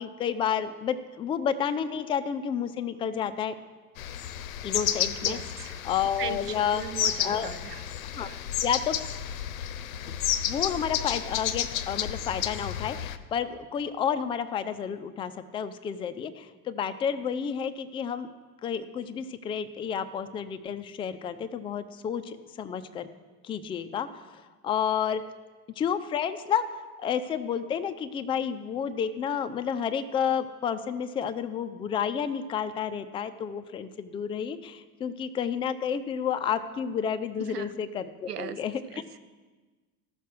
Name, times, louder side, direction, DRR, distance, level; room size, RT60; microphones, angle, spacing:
voice 1, 0.0-3.5 4.6-6.8 7.2-7.5 8.1-8.3 8.6-9.0 10.5-18.3 18.6-23.1 23.4-25.2 25.8-26.6 27.0-39.0, left 8 dB, 10° left, 9 dB, 0.4 m, -30 dB
sound 1, 4.0-13.2, left 10 dB, 60° left, 0.7 m, -31 dB
voice 2, 5.2-5.8 6.2-6.4 6.7-7.7 8.1-8.4 37.5-37.7 38.3-38.6, right 9 dB, 80° right, 12 dB, 0.8 m, -37 dB
14.0 x 6.6 x 6.4 m, 1.3 s
figure-of-eight pair, 70°, 46 cm